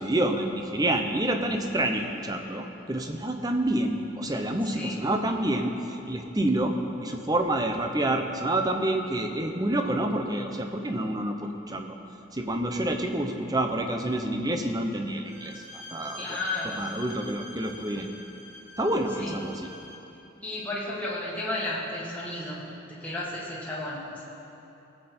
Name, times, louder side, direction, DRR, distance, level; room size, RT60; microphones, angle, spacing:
voice 1, 0.0-6.7 7.0-12.0 12.3-18.1 18.8-19.7, right 1 dB, 20° right, 4 dB, 0.7 m, -28 dB
voice 2, 4.6-5.0 16.1-16.9 19.1-19.3 20.4-24.2, left 2 dB, 5° left, -7 dB, 1.7 m, -33 dB
Bowed string instrument, 15.2-20.1, left 1 dB, 90° right, 2.3 m, -45 dB
19.0 x 7.8 x 4.4 m, 3.0 s
head